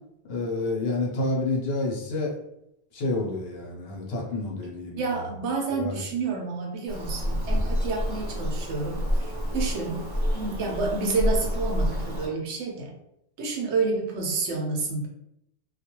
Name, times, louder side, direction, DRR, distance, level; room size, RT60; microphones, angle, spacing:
voice 1, 0.3-2.4 2.9-5.3 5.7-6.0, left 2 dB, 65° left, -2 dB, 0.9 m, -29 dB
voice 2, 5.0-10.0 10.3-12.9 13.4-15.1, right 3 dB, 85° right, 0 dB, 0.9 m, -29 dB
Bird vocalization bird call bird song, 6.9-12.3, equal, 40° right, 0.4 m, -28 dB
2.4 x 2.2 x 2.9 m, 0.81 s
omnidirectional pair, 1.1 m